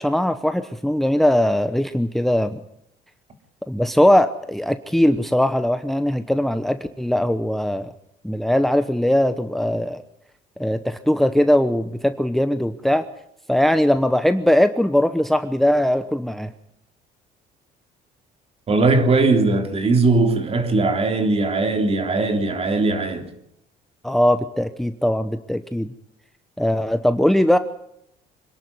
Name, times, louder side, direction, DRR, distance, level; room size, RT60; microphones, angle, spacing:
voice 1, 0.0-2.6 3.7-7.9 8.2-10.0 10.6-13.0 13.5-16.5 24.0-25.9 26.6-27.6, left 1 dB, ahead, 0.9 m, -20 dB
voice 2, 18.7-23.3, right 3 dB, 35° right, 3.3 m, -19 dB
25.5 x 11.5 x 9.5 m
cardioid pair, 110°, 17 cm